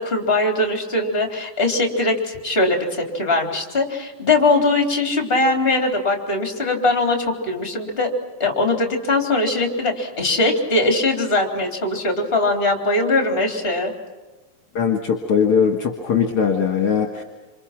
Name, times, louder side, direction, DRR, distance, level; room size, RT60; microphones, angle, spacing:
voice 1, 0.0-8.1 8.4-13.9, left 2 dB, 20° left, 3 dB, 3.7 m, -21 dB
voice 2, 14.7-17.2, left 6 dB, 55° left, 3 dB, 2.6 m, -20 dB
27.5 x 27.0 x 6.0 m, 1.2 s
omnidirectional pair, 3.4 m